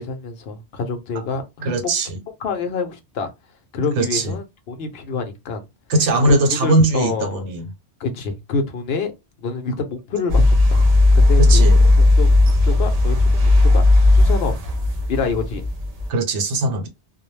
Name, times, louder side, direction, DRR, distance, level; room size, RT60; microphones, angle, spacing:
voice 1, 0.0-1.9 2.4-3.3 3.7-5.6 6.2-7.4 8.0-9.1 9.4-10.9 11.1-11.6 12.2-12.3 12.6-13.8 14.1-14.5 15.1-15.6, left 4 dB, 65° left, 0.8 m, -26 dB
voice 2, 1.6-2.2 4.0-4.4 5.9-7.7 11.4-11.8 16.1-16.9, right 2 dB, 80° right, 1.0 m, -20 dB
sound 1, 10.3-16.1, left 2 dB, 45° right, 0.5 m, -15 dB
2.3 x 2.1 x 3.0 m
omnidirectional pair, 1.2 m